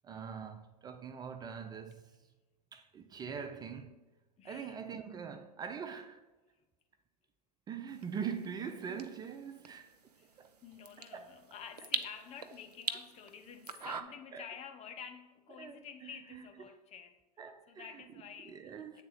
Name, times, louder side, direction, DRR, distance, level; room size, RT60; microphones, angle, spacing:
voice 1, 0.0-2.1 2.7-4.0 4.4-6.2 7.7-9.9 10.4-10.5 11.1-11.4 14.3-14.4 15.6-16.5 17.4-17.9 18.4-19.0, right 7 dB, 20° right, 0.4 m, -43 dB
voice 2, 4.4-4.8 10.2-19.0, left 7 dB, 35° left, 0.8 m, -50 dB
sound 1, 7.9-14.0, right 5 dB, 90° right, 0.5 m, -44 dB
8.2 x 3.7 x 5.6 m
hypercardioid pair, 90°, 20 cm